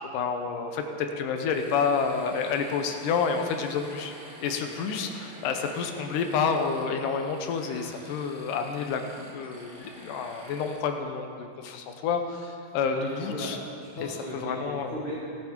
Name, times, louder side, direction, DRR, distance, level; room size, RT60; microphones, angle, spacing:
voice 1, 0.1-0.8 1.2-4.1 4.4-13.6 14.0-15.0, left 5 dB, 80° left, 5 dB, 2.5 m, -29 dB
sound 1, 1.5-10.8, right 1 dB, 25° right, 2.2 m, -48 dB
voice 2, 12.7-15.2, equal, 25° left, -9 dB, 1.4 m, -37 dB
18.0 x 9.1 x 4.5 m, 2.4 s
omnidirectional pair, 3.7 m